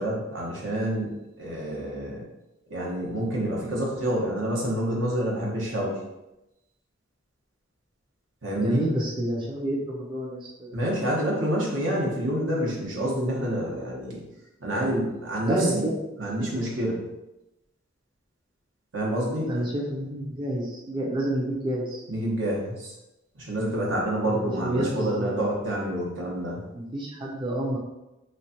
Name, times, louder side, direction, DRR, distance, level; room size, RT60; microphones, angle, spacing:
voice 1, 0.0-2.2 2.7-6.0 8.4-8.8 10.7-14.2 14.6-15.8 16.2-17.0 18.9-19.5 22.1-22.9 23.4-26.6, right 1 dB, 75° right, -3 dB, 1.0 m, -28 dB
voice 2, 8.6-10.8 15.4-15.9 19.4-22.0 24.2-25.4 26.7-27.8, right 1 dB, 25° right, -4 dB, 0.5 m, -29 dB
3.3 x 3.1 x 2.8 m, 0.95 s
head